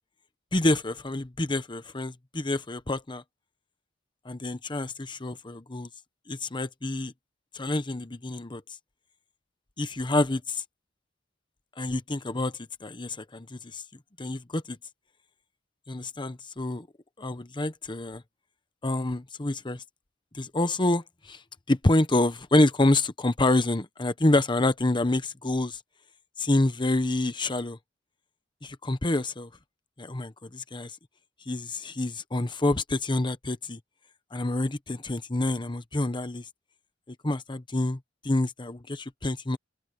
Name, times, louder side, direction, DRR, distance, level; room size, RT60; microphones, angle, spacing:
voice 1, 0.5-3.2 4.2-5.9 6.3-7.1 7.5-8.6 9.8-10.6 11.8-13.8 14.2-14.8 15.9-16.9 17.2-18.2 18.8-19.8 20.3-21.4 21.7-25.8 26.4-27.8 28.6-29.5 30.0-30.9 31.5-33.8 34.3-36.4 37.2-39.6, left 2 dB, 25° left, 1.0 m, -27 dB
open air
head